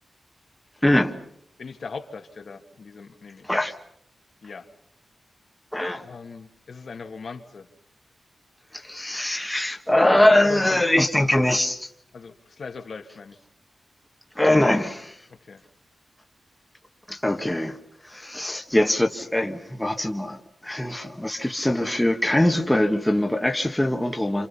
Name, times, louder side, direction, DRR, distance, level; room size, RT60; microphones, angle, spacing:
voice 1, 0.8-1.1 3.5-3.7 5.7-6.0 8.7-11.9 14.4-15.1 17.1-17.8 18.0-20.4 20.6-24.5, left 1 dB, 5° left, 4 dB, 1.4 m, -22 dB
voice 2, 1.6-3.5 4.4-4.7 5.9-7.7 10.4-10.9 11.2-11.3 12.1-13.4 15.3-15.6 17.4-17.5, left 4 dB, 55° left, 5 dB, 1.8 m, -39 dB
28.5 x 28.0 x 5.6 m, 0.71 s
wide cardioid pair, 175°, 0 cm